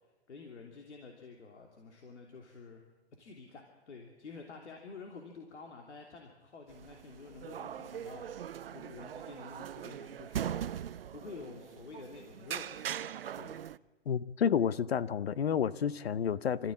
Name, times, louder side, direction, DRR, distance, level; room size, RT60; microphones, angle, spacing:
voice 1, 0.0-2.8 3.2-13.6, left 4 dB, 90° left, 3.1 m, -50 dB
sound 1, 6.7-13.8, right 9 dB, 60° right, 0.6 m, -41 dB
voice 2, 14.1-16.7, left 8 dB, 65° left, 0.9 m, -30 dB
26.0 x 14.5 x 8.7 m
hypercardioid pair, 175°, 34 cm